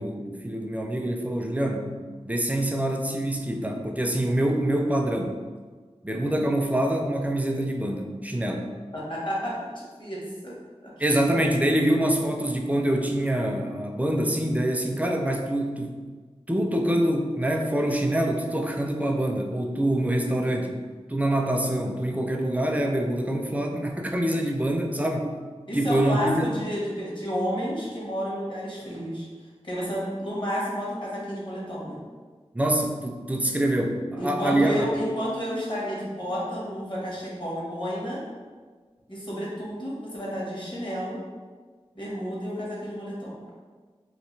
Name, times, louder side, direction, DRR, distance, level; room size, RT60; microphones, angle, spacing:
voice 1, 0.0-1.9 2.3-5.3 6.0-8.7 11.0-16.0 16.5-20.8 21.1-25.3 25.7-26.5 32.5-34.9, right 1 dB, 15° right, 2 dB, 0.4 m, -25 dB
voice 2, 8.9-10.5 10.8-11.2 25.7-29.3 29.6-32.0 34.2-38.2 39.1-41.2 41.9-43.3, equal, 45° left, -6 dB, 1.1 m, -31 dB
3.3 x 2.5 x 3.1 m, 1.5 s
wide cardioid pair, 55°, 11 cm